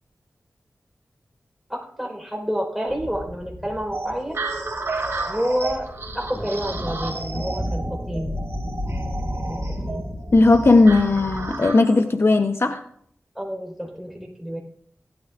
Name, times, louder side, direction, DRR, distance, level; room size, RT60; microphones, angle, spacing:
voice 1, 1.7-4.4 5.3-5.9 6.1-8.3 9.5-10.0 13.4-14.6, equal, 5° right, 1 dB, 4.1 m, -29 dB
sound 1, 2.9-11.7, equal, 25° left, 1.6 m, -33 dB
sound 2, 3.9-12.1, right 3 dB, 60° right, 2.1 m, -32 dB
voice 2, 10.3-12.8, left 3 dB, 55° left, 7 dB, 0.7 m, -16 dB
16.5 x 12.5 x 2.4 m, 0.64 s
wide cardioid pair, 60°, 5 cm